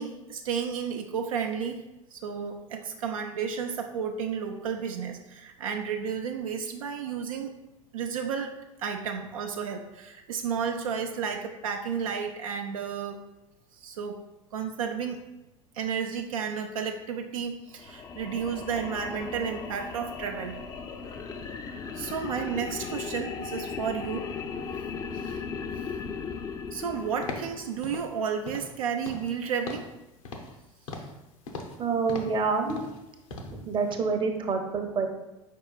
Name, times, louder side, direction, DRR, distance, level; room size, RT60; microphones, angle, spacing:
voice 1, 0.0-1.8 2.1-7.5 7.9-8.5 8.8-13.2 13.8-14.2 14.5-15.2 15.7-20.6 21.9-24.3 25.1-25.3 26.7-29.9, right 6 dB, 75° right, 4 dB, 0.4 m, -32 dB
sound 1, 17.7-28.1, left 5 dB, 20° left, 0.4 m, -37 dB
sound 2, 27.2-27.5 27.8-28.1 28.5-28.7 29.0-29.4 29.7-29.9 30.2-30.6 30.9-31.2 31.5-31.8 32.1-32.4 32.7-33.0 33.3-33.6 33.9-34.0, left 3 dB, 70° left, 0.8 m, -39 dB
voice 2, 31.8-32.8 33.3-35.1, right 4 dB, 30° right, 5 dB, 0.7 m, -27 dB
4.9 x 4.5 x 2.4 m, 0.97 s
hypercardioid pair, 80°, 18 cm